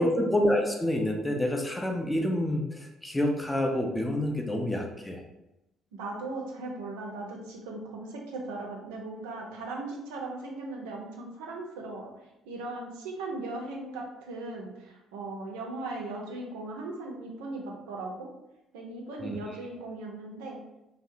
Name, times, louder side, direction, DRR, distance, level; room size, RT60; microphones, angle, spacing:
voice 1, 0.0-5.2 19.2-19.4, left 1 dB, 10° left, 2 dB, 0.4 m, -27 dB
voice 2, 5.9-12.1 12.4-18.3 18.7-20.6, right 2 dB, 70° right, 0 dB, 0.4 m, -38 dB
2.7 x 2.0 x 2.5 m, 0.92 s
figure-of-eight pair, 45°, 0 cm